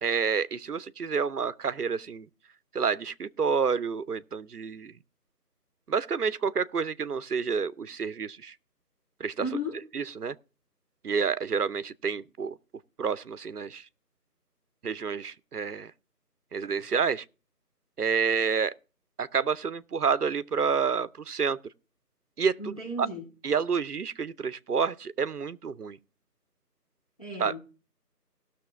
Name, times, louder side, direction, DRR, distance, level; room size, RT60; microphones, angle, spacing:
voice 1, 0.0-2.3 2.7-4.9 5.9-8.5 9.2-9.5 9.9-10.4 11.0-12.5 13.0-13.8 14.8-15.9 16.5-17.2 18.0-18.7 19.2-21.6 22.4-22.7 23.0-23.1 23.4-26.0 27.4-27.5, right 6 dB, 65° right, 0.6 m, -29 dB
voice 2, 9.4-9.8 22.6-23.2 27.2-27.6, left 1 dB, 25° left, 1.6 m, -34 dB
18.0 x 6.5 x 3.4 m
figure-of-eight pair, 170°, 49 cm